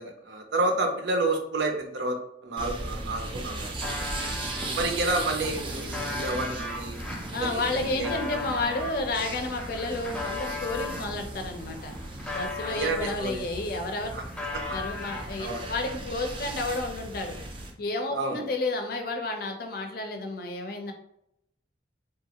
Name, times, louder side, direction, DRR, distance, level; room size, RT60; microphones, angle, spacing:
voice 1, 0.0-4.3 4.7-7.0 7.4-7.6 8.0-8.4 12.6-13.4 14.1-14.2 14.7-14.8 15.4-15.7 18.1-18.4, right 2 dB, 75° right, 3 dB, 0.6 m, -30 dB
sound 1, 2.6-17.7, right 2 dB, 30° right, 0.4 m, -37 dB
sound 2, 3.1-4.7 5.3-11.1 11.6-13.5 13.8-15.6, left 3 dB, 5° left, 0.6 m, -37 dB
voice 2, 7.3-11.9 12.3-14.1 14.7-17.4 17.8-20.9, left 2 dB, 60° left, 4 dB, 0.5 m, -31 dB
2.9 x 2.3 x 2.8 m, 0.77 s
head